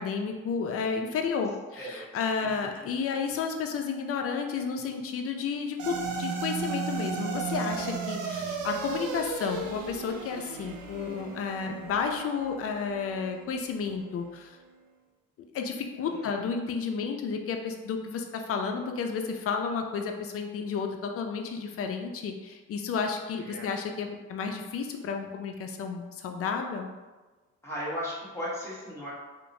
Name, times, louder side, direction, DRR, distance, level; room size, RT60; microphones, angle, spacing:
voice 1, 0.0-14.6 15.5-26.9, left 5 dB, 50° left, 4 dB, 0.4 m, -32 dB
voice 2, 2.4-2.9 16.1-16.4 23.4-23.7 27.6-29.1, equal, 10° left, -8 dB, 1.2 m, -37 dB
sound 1, 5.8-14.3, right 5 dB, 80° right, 0.5 m, -35 dB
2.9 x 2.1 x 2.6 m, 1.2 s
cardioid pair, 90°, 30 cm